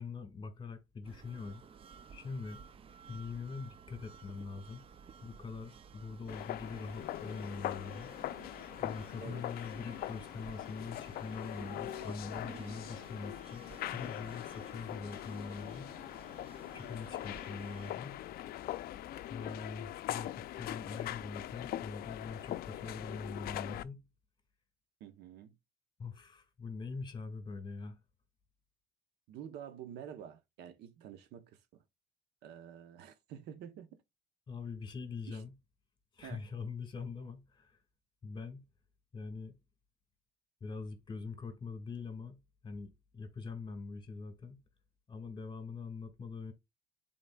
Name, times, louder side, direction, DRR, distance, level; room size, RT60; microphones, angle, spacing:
voice 1, 0.0-1.6 2.1-2.6 3.1-4.8 5.2-8.1 8.8-13.7 13.9-15.9 16.7-18.2 19.3-24.0 26.0-28.0 34.5-35.5 36.1-37.8 38.2-38.7 39.1-39.6 40.6-44.6 45.1-46.5, left 4 dB, 25° left, 1.9 m, -43 dB
sound 1, 1.0-17.9, right 6 dB, 35° right, 0.4 m, -55 dB
sound 2, 6.3-23.8, left 14 dB, 65° left, 0.4 m, -42 dB
sound 3, 18.1-23.3, left 7 dB, 50° left, 0.9 m, -60 dB
voice 2, 25.0-25.5 29.3-31.8 32.4-34.0 35.3-35.4 36.2-36.4, right 9 dB, 80° right, 0.8 m, -49 dB
11.0 x 3.9 x 2.3 m
cardioid pair, 110°, 17 cm